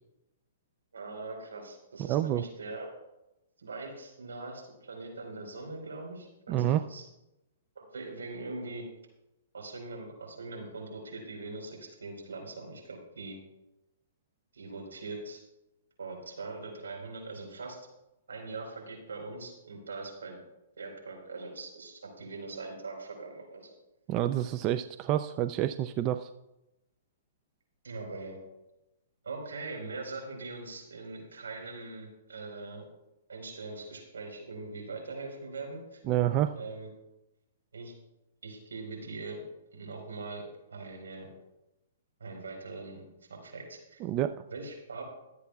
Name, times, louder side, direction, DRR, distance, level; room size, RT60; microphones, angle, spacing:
voice 1, 0.9-2.9 3.6-6.6 6.8-7.1 7.8-8.9 9.5-13.4 14.5-15.4 16.0-17.8 18.3-20.4 20.8-23.7 27.8-28.4 29.2-32.9 33.3-36.0 36.6-36.9 37.7-37.9 38.4-39.4 39.7-41.3 42.2-43.0 43.3-44.0 44.5-45.0, right 3 dB, 80° right, 1 dB, 4.2 m, -41 dB
voice 2, 2.0-2.4 6.5-6.8 24.1-26.3 36.1-36.6 44.0-44.3, right 12 dB, 35° right, 10 dB, 0.4 m, -28 dB
23.0 x 8.2 x 2.3 m, 0.94 s
hypercardioid pair, 120°, 0 cm